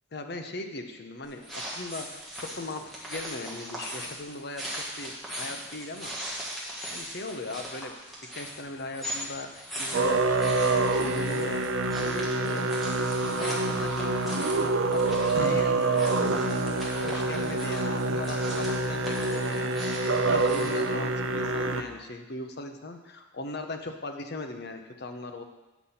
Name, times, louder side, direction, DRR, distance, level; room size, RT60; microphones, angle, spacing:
voice 1, 0.1-6.1 6.6-8.0 8.3-12.7 13.2-16.6 16.9-25.4, left 2 dB, 55° left, 6 dB, 0.8 m, -39 dB
sound 1, 1.2-20.9, equal, ahead, 1.7 m, -40 dB
Musical instrument, 9.9-21.8, right 2 dB, 80° right, 0.6 m, -26 dB
8.2 x 5.5 x 5.8 m, 1.1 s
head